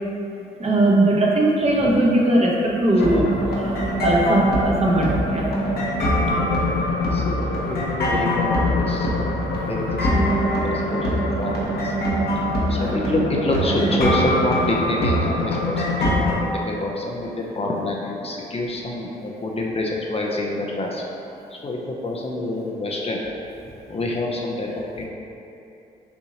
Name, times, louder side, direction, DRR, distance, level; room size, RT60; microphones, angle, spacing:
voice 1, 0.6-3.3 3.6-5.5 12.7-12.9, right 1 dB, 35° right, -4 dB, 1.0 m, -19 dB
sound 1, 2.9-16.3, equal, 55° left, 1.1 m, -23 dB
voice 2, 6.2-7.4 7.7-9.3 9.7-11.9 12.7-21.0 21.5-23.2 23.9-25.0, left 2 dB, 30° left, -2 dB, 0.6 m, -27 dB
5.6 x 2.7 x 2.8 m, 2.7 s
hypercardioid pair, 55°, 19 cm